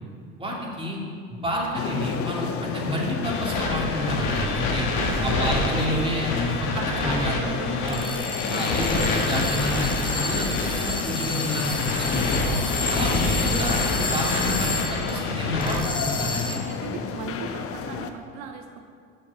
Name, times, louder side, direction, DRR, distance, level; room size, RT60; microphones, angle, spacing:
voice 1, 0.4-1.0 1.3-4.9 5.2-7.3 7.8-8.0 8.5-12.6 12.9-16.6, equal, 20° right, -3 dB, 2.5 m, -29 dB
sound 1, 1.7-18.1, left 6 dB, 50° left, 0.8 m, -31 dB
sound 2, 3.2-15.8, left 3 dB, 75° left, 1.4 m, -28 dB
voice 2, 4.9-5.2 6.7-8.6 14.4-14.5 16.6-18.8, right 6 dB, 75° right, 4 dB, 0.8 m, -37 dB
sound 3, 7.9-15.2 15.6-16.8, left 3 dB, 15° left, 1.1 m, -32 dB
7.1 x 6.5 x 6.4 m, 2.2 s
supercardioid pair, 75°, 29 cm